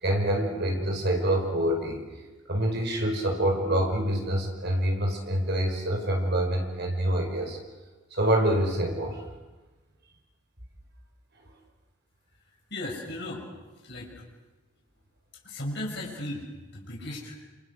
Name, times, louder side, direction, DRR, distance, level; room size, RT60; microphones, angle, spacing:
voice 1, 0.0-2.0 2.5-7.6 8.1-9.2, right 1 dB, 50° right, 3 dB, 5.3 m, -26 dB
voice 2, 12.7-13.4 13.8-14.2 15.4-17.4, left 1 dB, 50° left, -2 dB, 6.9 m, -36 dB
28.0 x 28.0 x 6.5 m, 1.2 s
head